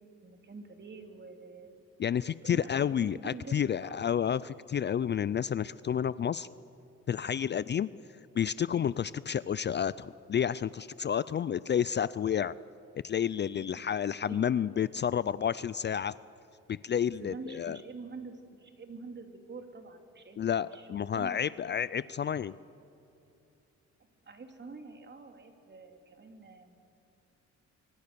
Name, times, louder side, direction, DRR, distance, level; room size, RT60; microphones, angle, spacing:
voice 1, 0.0-1.8 2.4-2.9 3.2-4.4 13.4-13.8 14.2-14.6 17.0-21.5 24.2-26.8, right 4 dB, 35° right, 5 dB, 3.1 m, -47 dB
voice 2, 2.0-6.5 7.1-7.9 8.4-12.5 13.0-16.1 16.7-17.8 20.4-22.5, left 8 dB, 35° left, 18 dB, 0.4 m, -30 dB
25.0 x 24.0 x 6.9 m, 2.9 s
cardioid pair, 90°, 30 cm